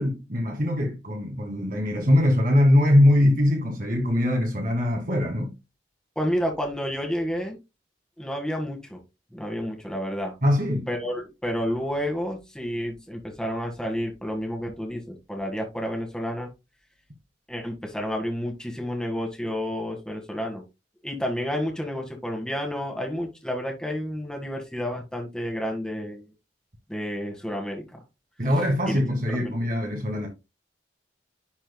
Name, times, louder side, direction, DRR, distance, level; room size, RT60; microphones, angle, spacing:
voice 1, 0.0-5.5 10.4-10.9 28.4-30.3, left 1 dB, 45° right, 1.9 m, -22 dB
voice 2, 6.1-7.6 8.2-9.0 9.3-10.3 10.9-16.5 17.5-20.6 21.0-26.3 26.9-28.0 28.9-29.0 29.4-29.5, equal, 5° left, 1.6 m, -30 dB
10.5 x 4.4 x 2.2 m
head